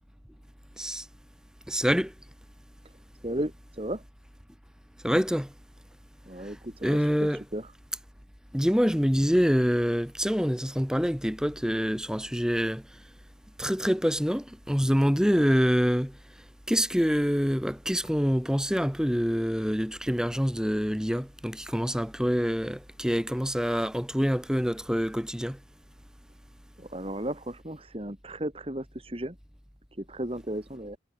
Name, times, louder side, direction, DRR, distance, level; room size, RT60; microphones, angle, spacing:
voice 1, 1.7-2.1 5.0-5.5 6.8-7.4 8.5-12.8 13.6-16.1 16.7-25.6, equal, 5° right, 4.7 m, -26 dB
voice 2, 3.2-4.0 6.3-7.7 26.8-29.4 30.0-31.0, right 1 dB, 30° right, 2.5 m, -35 dB
head